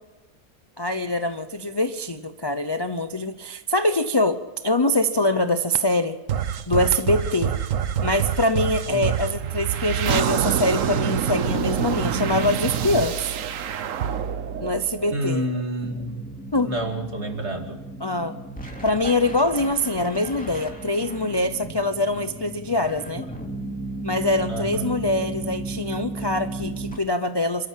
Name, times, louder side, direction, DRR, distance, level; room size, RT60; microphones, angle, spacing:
voice 1, 0.8-6.2 6.7-7.6 8.0-13.2 14.6-15.5 16.5-16.7 18.0-18.4 18.8-23.3 24.0-27.7, left 1 dB, 30° left, 9 dB, 0.5 m, -24 dB
sound 1, 6.3-15.6, right 8 dB, 60° right, 1.1 m, -26 dB
voice 2, 15.1-16.2 16.6-17.8 24.5-24.9, right 1 dB, 45° right, 4 dB, 2.7 m, -29 dB
sound 2, 15.8-27.0, right 2 dB, 5° left, 2.9 m, -35 dB
27.5 x 13.5 x 7.5 m, 1.1 s
omnidirectional pair, 1.7 m